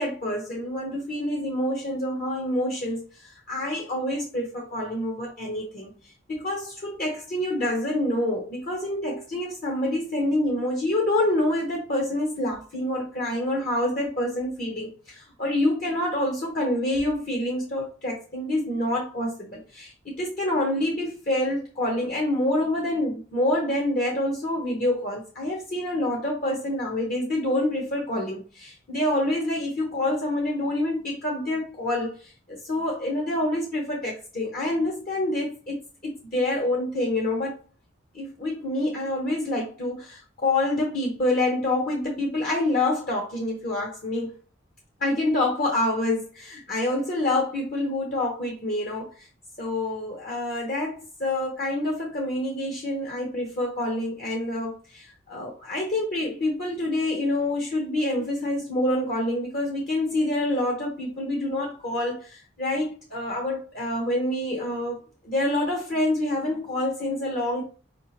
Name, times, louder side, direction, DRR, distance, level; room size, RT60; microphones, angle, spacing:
voice 1, 0.0-5.9 6.3-32.3 32.6-37.6 38.1-44.3 45.0-49.3 49.6-67.6, left 1 dB, 45° left, 1.0 m, -27 dB
4.9 x 3.6 x 2.9 m
head